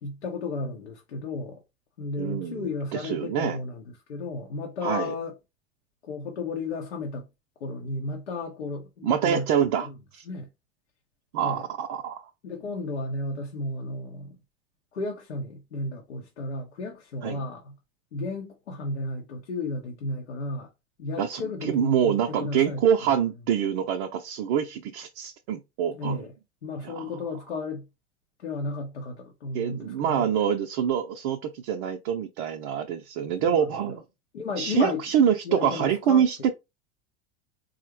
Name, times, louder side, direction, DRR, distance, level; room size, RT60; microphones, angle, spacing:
voice 1, 0.0-1.6 2.0-5.3 6.0-7.3 7.6-9.5 9.8-10.0 10.3-10.5 11.4-11.7 12.4-14.4 14.9-17.7 18.1-20.7 21.0-23.1 25.9-26.3 26.6-27.9 28.4-30.3 33.4-34.0 34.3-35.0 35.4-36.5, left 3 dB, 75° left, 0.7 m, -33 dB
voice 2, 2.2-3.6 4.8-5.1 9.0-9.9 10.1-10.2 11.3-12.3 17.2-17.4 21.2-26.2 26.8-27.0 29.5-34.0 34.6-36.5, right 8 dB, 45° right, 0.5 m, -26 dB
3.7 x 2.1 x 2.9 m
figure-of-eight pair, 80°, 33 cm